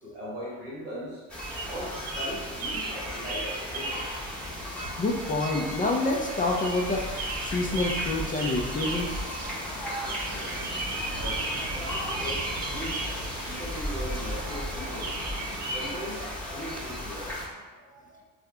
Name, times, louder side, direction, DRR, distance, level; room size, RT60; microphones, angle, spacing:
voice 1, 0.0-1.2 1.6-4.1 11.0-11.8 12.2-15.1 15.7-18.1, equal, 90° right, -7 dB, 1.5 m, -40 dB
sound 1, 1.3-17.5, equal, 5° left, 1.1 m, -35 dB
sound 2, 1.5-15.9, right 2 dB, 55° right, 1.0 m, -37 dB
sound 3, 3.6-4.7 5.2-5.3 6.8-7.1 7.4-8.8 9.1-9.2 9.4-9.5 9.8-9.9 10.3-17.0, right 2 dB, 25° right, 1.0 m, -46 dB
voice 2, 5.0-7.1 7.4-9.4, left 2 dB, 20° left, 1 dB, 0.5 m, -27 dB
3.6 x 3.4 x 3.4 m, 1.3 s
figure-of-eight pair, 55°, 45 cm